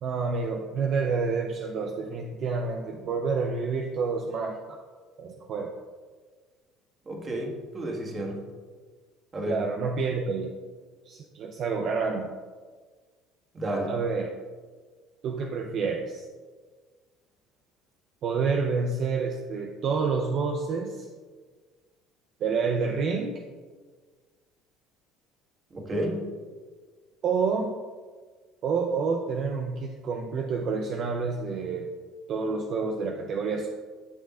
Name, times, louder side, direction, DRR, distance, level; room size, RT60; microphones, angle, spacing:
voice 1, 0.0-4.8 5.2-5.7 9.4-10.5 11.1-12.3 13.9-14.3 15.2-16.2 18.2-21.1 22.4-23.3 27.2-27.8 28.6-31.9 32.3-33.7, right 5 dB, 55° right, 3 dB, 0.6 m, -28 dB
voice 2, 7.1-8.4 9.3-9.6 13.5-13.9 25.7-26.2, right 1 dB, 30° right, 0 dB, 1.7 m, -31 dB
11.0 x 6.5 x 2.5 m, 1.5 s
supercardioid pair, 105°, 0 cm